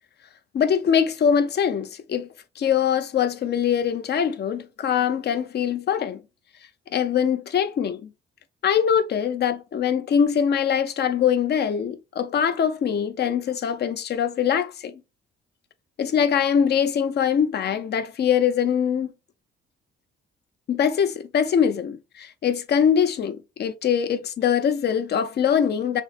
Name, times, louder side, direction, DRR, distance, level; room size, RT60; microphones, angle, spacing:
voice 1, 0.5-2.3 2.6-6.2 6.9-8.1 8.6-15.0 16.0-19.1 20.7-26.0, left 8 dB, 55° left, 0.7 m, -23 dB
6.2 x 2.1 x 4.1 m
cardioid pair, 90°, 20 cm